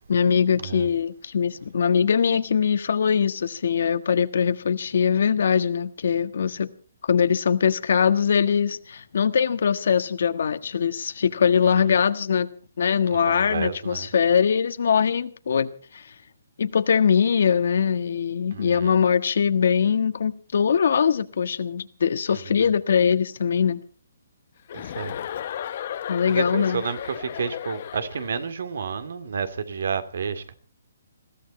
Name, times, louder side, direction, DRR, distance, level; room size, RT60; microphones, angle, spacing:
voice 1, 0.1-6.7 7.0-12.5 12.8-15.7 15.9-16.1 16.6-23.8 26.1-26.8, left 7 dB, 65° left, 1.5 m, -22 dB
voice 2, 13.1-14.1 18.5-19.0 22.3-22.6 24.7-25.1 26.3-30.5, right 6 dB, 65° right, 2.4 m, -31 dB
Chuckle chortle, 24.7-28.4, left 10 dB, 45° left, 1.0 m, -34 dB
21.5 x 15.5 x 4.3 m
hypercardioid pair, 165°, 0 cm